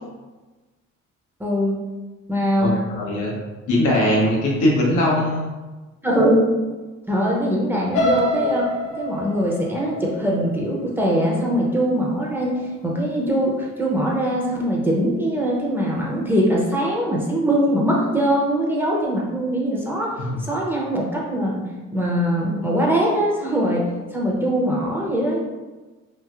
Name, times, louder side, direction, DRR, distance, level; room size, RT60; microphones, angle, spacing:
voice 1, 1.4-1.8 2.3-2.8 6.0-6.4 7.1-8.7 9.0-20.1 20.5-21.6 21.9-23.9 24.1-25.4, equal, 5° right, -4 dB, 0.6 m, -22 dB
voice 2, 2.6-3.4 3.7-5.5 20.2-20.5, left 1 dB, 85° left, -4 dB, 0.9 m, -20 dB
sound 1, 7.9-11.9 12.4-12.7 13.0-13.1, left 1 dB, 50° left, 0.6 m, -26 dB
3.0 x 2.7 x 2.3 m, 1.2 s
cardioid pair, 90°, 30 cm